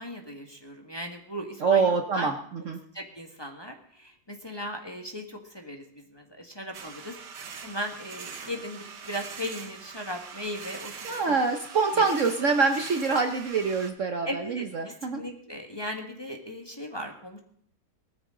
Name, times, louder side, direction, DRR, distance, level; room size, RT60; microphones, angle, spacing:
voice 1, 0.0-2.3 2.9-7.2 7.6-11.1 11.9-12.0 12.4-12.5 14.2-17.4, equal, 15° left, 2 dB, 1.6 m, -37 dB
voice 2, 1.6-2.8 11.0-15.2, right 4 dB, 50° right, 5 dB, 1.1 m, -25 dB
sound 1, 6.7-13.9, right 6 dB, 80° right, 1.9 m, -43 dB
20.0 x 13.5 x 3.8 m, 0.62 s
omnidirectional pair, 1.9 m